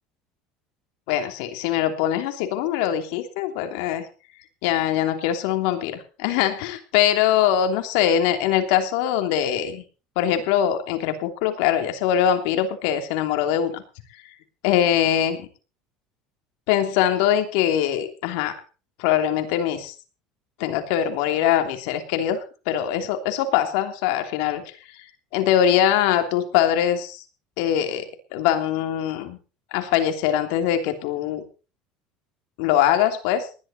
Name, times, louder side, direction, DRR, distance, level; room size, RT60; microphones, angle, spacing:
voice 1, 1.1-4.0 4.6-9.8 10.1-13.8 14.6-15.5 16.7-18.5 19.0-19.9 20.6-24.6 25.3-27.2 27.6-29.4 29.7-31.4 32.6-33.5, left 10 dB, 80° left, 7 dB, 3.0 m, -22 dB
19.0 x 12.0 x 4.3 m, 0.35 s
supercardioid pair, 125°, 2 cm